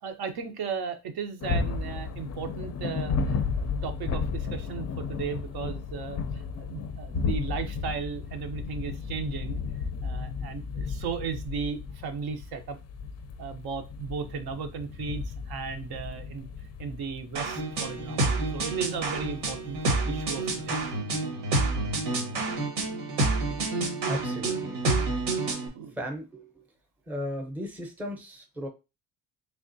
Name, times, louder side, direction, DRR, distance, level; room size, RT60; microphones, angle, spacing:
voice 1, 0.0-9.6 10.0-12.8 13.4-16.5 16.8-19.8 20.1-20.8 24.6-24.7 25.2-25.4 25.7-26.0, right 6 dB, 65° right, 6 dB, 0.7 m, -36 dB
sound 1, 1.4-21.0, left 5 dB, 40° left, 0.4 m, -34 dB
sound 2, 17.4-25.7, right 2 dB, 85° right, 1.4 m, -28 dB
voice 2, 24.1-25.0 26.0-26.5 27.1-28.7, equal, 5° right, 3 dB, 0.7 m, -36 dB
3.5 x 3.4 x 2.6 m, 0.26 s
cardioid pair, 160°, 41 cm